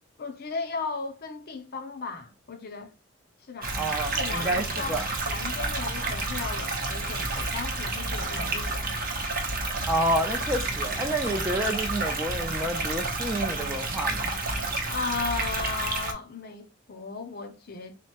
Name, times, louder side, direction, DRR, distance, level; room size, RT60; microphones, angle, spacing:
voice 1, 0.2-2.9 3.4-3.7 4.0-8.9 14.7-18.0, left 4 dB, 50° left, 0.5 m, -36 dB
sound 1, 3.6-16.1, right 2 dB, 45° right, 0.7 m, -30 dB
voice 2, 3.7-5.1 9.9-14.3, right 1 dB, 10° right, 0.4 m, -29 dB
3.7 x 2.2 x 4.1 m
head